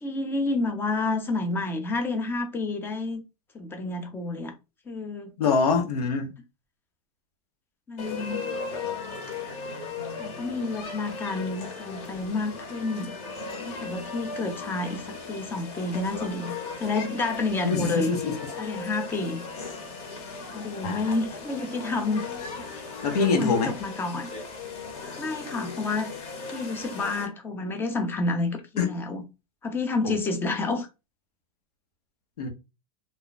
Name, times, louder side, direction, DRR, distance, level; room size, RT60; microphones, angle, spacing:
voice 1, 0.0-3.2 3.5-4.5 4.9-5.3 7.9-8.4 10.1-13.1 13.6-18.1 18.6-19.4 20.5-22.3 22.7-22.8 23.1-24.3 25.2-26.1 26.5-29.2 29.6-30.9, left 3 dB, 10° left, 0.5 m, -29 dB
voice 2, 5.4-6.3 17.6-18.4 20.8-21.2 23.0-23.7 28.8-28.9 30.0-30.2 32.4-32.5, left 5 dB, 90° left, 1.0 m, -24 dB
sound 1, 8.0-27.3, left 4 dB, 30° left, 1.0 m, -37 dB
2.4 x 2.2 x 3.9 m
supercardioid pair, 145°, 19 cm